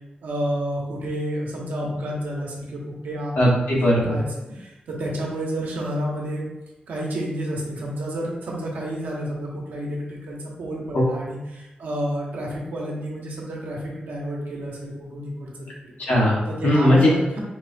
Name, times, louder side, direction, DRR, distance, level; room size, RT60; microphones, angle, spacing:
voice 1, 0.2-3.3 4.1-4.3 4.5-6.5 6.9-15.5 15.8-15.9 16.5-17.4, equal, 85° right, -3 dB, 0.8 m, -30 dB
voice 2, 3.4-4.2 10.9-11.0 16.1-17.1, left 1 dB, 75° left, -5 dB, 1.1 m, -18 dB
4.3 x 2.1 x 2.5 m, 1.0 s
cardioid pair, 65°, 3 cm